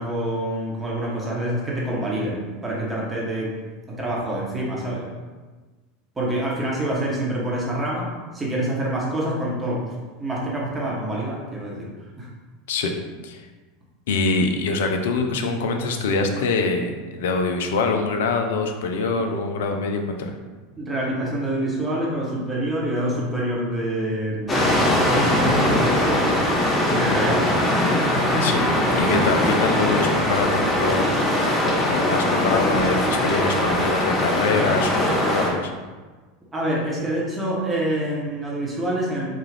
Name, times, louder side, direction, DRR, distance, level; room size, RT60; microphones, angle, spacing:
voice 1, 0.0-3.5 3.9-5.1 6.2-8.1 8.3-9.9 10.2-11.9 12.2-12.3 20.8-24.7 25.1-26.3 26.9-27.7 28.1-28.5 36.5-39.3, right 1 dB, 20° right, -4 dB, 0.9 m, -26 dB
voice 2, 14.1-20.4 28.4-28.6 28.9-31.1 31.6-35.7, left 3 dB, 65° left, 4 dB, 0.4 m, -24 dB
sound 1, 24.5-35.5, left 1 dB, 20° left, 1.0 m, -21 dB
3.8 x 2.3 x 3.3 m, 1.3 s
figure-of-eight pair, 80°, 0 cm